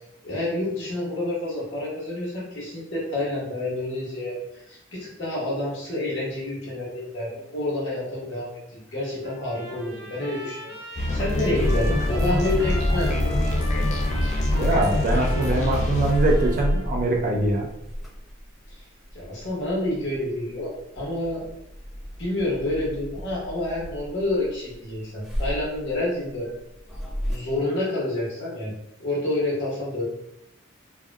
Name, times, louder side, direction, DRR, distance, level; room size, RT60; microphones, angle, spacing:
voice 1, 0.2-8.6 8.9-13.8 19.1-21.4 22.2-26.5 27.3-28.7 29.0-30.0, left 1 dB, 60° left, -6 dB, 1.2 m, -28 dB
Trumpet, 9.2-16.8, right 1 dB, 55° right, 1.1 m, -39 dB
sound 1, 11.0-16.1, left 2 dB, 35° left, 0.4 m, -25 dB
sound 2, 11.5-20.7 20.9-24.7 25.2-27.4, equal, ahead, 0.8 m, -30 dB
voice 2, 14.5-17.7, right 2 dB, 40° right, 0 dB, 0.5 m, -23 dB
3.5 x 2.2 x 2.2 m, 0.82 s
head